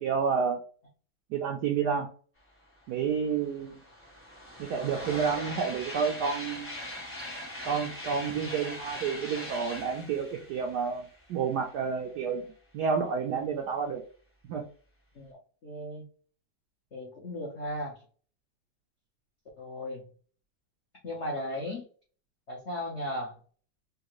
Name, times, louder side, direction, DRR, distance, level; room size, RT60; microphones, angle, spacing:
voice 1, 0.0-0.6 1.3-2.1 2.9-3.8 4.6-6.7 7.7-12.5 12.7-14.0 14.5-14.6, right 6 dB, 90° right, 2 dB, 0.9 m, -30 dB
sound 1, 2.9-3.0 3.2-11.9, left 1 dB, 10° left, 1.0 m, -41 dB
voice 2, 15.6-16.0 16.9-17.9 19.6-20.0 21.0-21.8 22.5-23.3, left 1 dB, 80° left, -2 dB, 0.6 m, -36 dB
3.6 x 2.3 x 2.9 m, 0.42 s
omnidirectional pair, 2.3 m